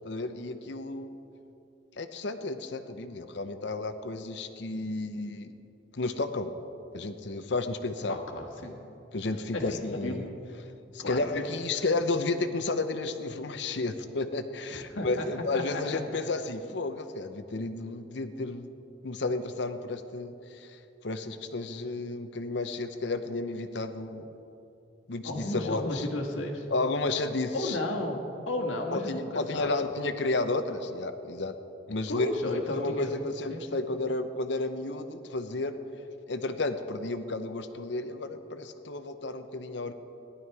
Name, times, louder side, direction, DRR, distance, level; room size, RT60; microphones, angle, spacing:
voice 1, 0.0-1.2 2.0-5.5 5.9-6.5 6.9-8.2 9.1-10.3 10.9-18.7 19.0-24.3 25.1-26.1 26.7-27.8 28.9-31.5 31.9-35.8 36.3-39.9, left 2 dB, 65° left, 9 dB, 0.7 m, -32 dB
voice 2, 8.1-8.8 9.5-10.1 11.0-11.5 14.9-15.3 15.5-15.6 25.2-26.6 27.5-29.7 32.1-33.1 33.5-33.8, left 1 dB, 90° left, 1 dB, 1.6 m, -33 dB
15.5 x 11.5 x 4.7 m, 2.9 s
head